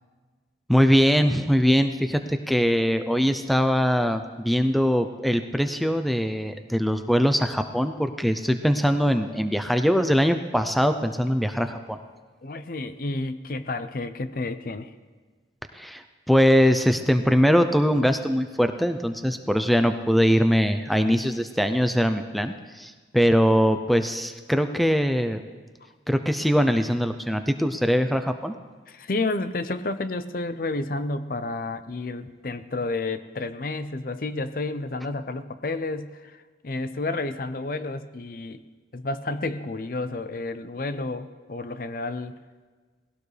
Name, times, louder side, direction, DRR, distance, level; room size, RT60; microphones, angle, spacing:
voice 1, 0.7-12.0 15.7-25.4 26.1-28.5, equal, ahead, 8 dB, 0.5 m, -22 dB
voice 2, 12.4-14.9 28.9-38.6 38.9-42.4, left 2 dB, 50° left, 11 dB, 0.6 m, -31 dB
20.0 x 16.5 x 3.3 m, 1.4 s
head